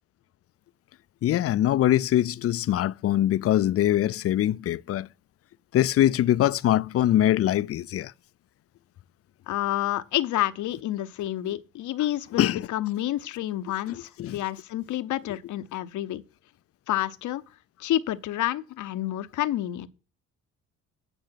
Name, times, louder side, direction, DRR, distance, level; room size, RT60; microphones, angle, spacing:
voice 1, 1.2-5.1 5.7-8.1 12.4-12.7 13.9-14.4, left 12 dB, 50° left, 0.4 m, -23 dB
voice 2, 9.5-16.2 16.9-17.4 17.8-19.9, left 14 dB, 75° left, 0.8 m, -29 dB
9.2 x 6.3 x 5.7 m
cardioid pair, 90°, 30 cm